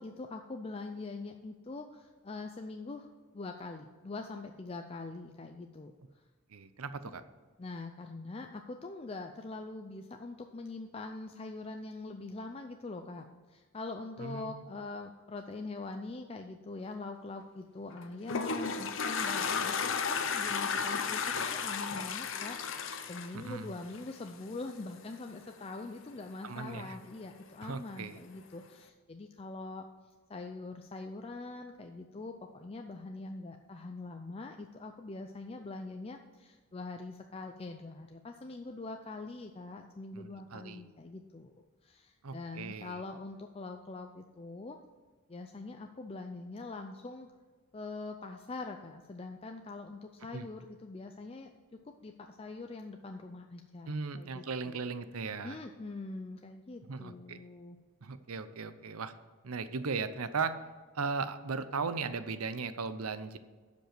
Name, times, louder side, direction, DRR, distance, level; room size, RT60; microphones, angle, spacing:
voice 1, 0.0-3.1 3.3-6.2 7.6-29.9 30.3-41.5 41.8-44.8 45.3-47.3 47.7-51.5 51.8-54.8 55.4-57.8, left 3 dB, 25° left, 5 dB, 0.4 m, -43 dB
voice 2, 6.5-7.2 14.2-14.6 23.3-23.7 26.4-27.0 27.6-28.2 40.1-40.8 42.2-43.0 50.3-50.5 53.9-55.6 56.9-57.4 58.0-59.1 59.4-60.6 60.9-63.4, right 4 dB, 85° right, 12 dB, 0.7 m, -37 dB
Toilet flush, 17.9-24.3, left 5 dB, 60° left, 0.7 m, -33 dB
11.5 x 5.3 x 5.9 m, 1.4 s
head